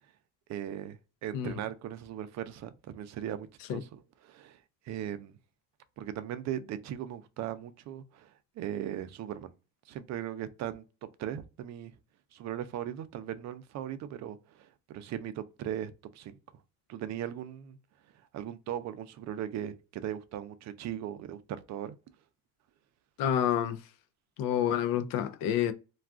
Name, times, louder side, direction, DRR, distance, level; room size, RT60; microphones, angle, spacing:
voice 1, 0.5-4.6 4.9-5.4 6.0-8.3 8.6-9.5 9.9-10.8 11.2-11.9 12.3-16.4 16.9-17.8 18.3-21.9, right 10 dB, 50° right, 0.4 m, -38 dB
voice 2, 23.2-23.8 24.4-25.7, left 10 dB, 70° left, 0.5 m, -28 dB
2.3 x 2.3 x 3.5 m
cardioid pair, 125°, 35 cm